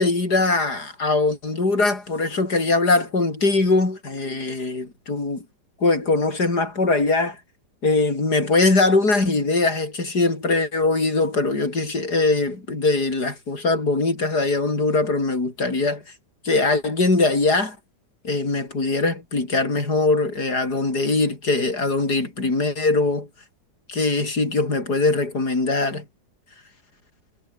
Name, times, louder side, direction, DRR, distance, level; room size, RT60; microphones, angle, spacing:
voice 1, 0.0-5.4 5.8-7.4 7.8-16.0 16.4-17.8 18.2-23.3 23.9-26.0, left 3 dB, 60° left, 6.1 m, -21 dB
omnidirectional pair, 2.0 m